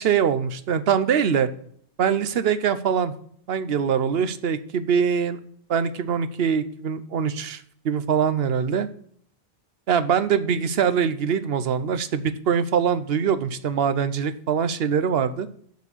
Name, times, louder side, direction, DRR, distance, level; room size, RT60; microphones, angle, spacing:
voice 1, 0.0-1.5 2.0-3.1 3.5-5.4 5.7-8.9 9.9-15.5, right 7 dB, 70° right, 12 dB, 0.9 m, -23 dB
7.3 x 6.1 x 6.6 m, 0.62 s
omnidirectional pair, 1.1 m